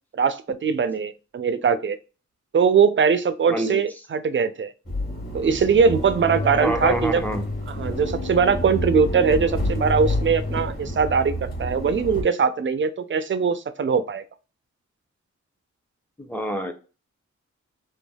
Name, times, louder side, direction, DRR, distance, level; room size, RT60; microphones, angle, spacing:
voice 1, 0.2-2.0 2.5-4.7 5.3-7.3 7.7-14.2, right 6 dB, 40° right, 12 dB, 0.4 m, -21 dB
voice 2, 3.5-3.8 6.6-7.4 16.3-16.7, equal, 5° left, 6 dB, 0.6 m, -26 dB
sound 1, 4.9-12.2, left 1 dB, 30° left, 1.3 m, -28 dB
3.3 x 2.2 x 2.2 m, 0.33 s
wide cardioid pair, 70°, 30 cm